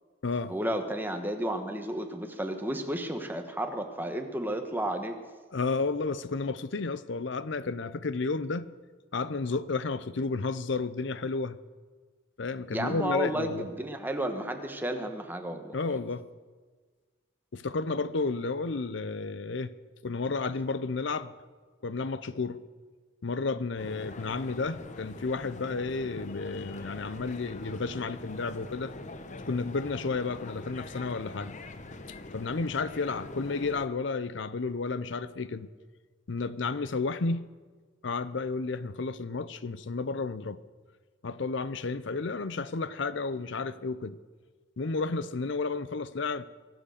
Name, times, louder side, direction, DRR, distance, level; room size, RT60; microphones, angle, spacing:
voice 1, 0.5-5.2 12.7-15.8, right 1 dB, 10° right, 1.2 m, -32 dB
voice 2, 5.5-8.7 9.1-11.6 12.4-13.7 15.7-16.3 17.5-19.7 20.0-21.3 21.8-22.6 23.2-28.9 29.5-31.6 32.3-35.7 36.3-37.5 38.0-40.6 41.2-44.2 44.8-46.5, left 3 dB, 65° left, 0.7 m, -32 dB
sound 1, 23.8-33.9, left 2 dB, 40° left, 0.9 m, -44 dB
23.5 x 8.0 x 6.6 m
head